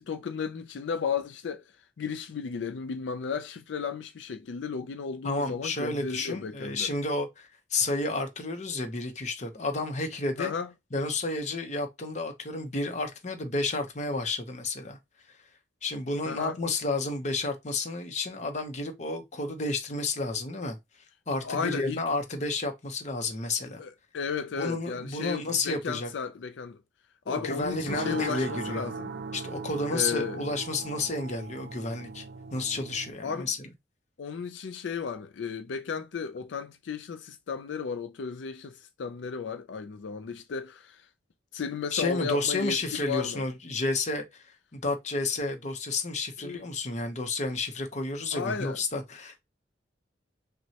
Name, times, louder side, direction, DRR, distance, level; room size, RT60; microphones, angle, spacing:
voice 1, 0.0-6.9 10.4-10.7 16.3-16.6 21.4-22.0 23.8-26.8 27.3-29.1 29.9-30.4 33.2-33.5 34.2-41.1 41.5-43.4 46.4-46.7 48.3-48.8, left 6 dB, 85° left, 0.4 m, -34 dB
voice 2, 5.2-10.5 10.9-15.0 15.8-20.8 21.3-23.8 24.6-26.1 27.3-28.9 29.3-32.3 32.5-33.7 41.9-44.4 44.7-49.4, left 3 dB, 40° left, 0.8 m, -31 dB
sound 1, 27.6-33.1, right 4 dB, 65° right, 0.5 m, -39 dB
5.9 x 2.2 x 2.8 m
head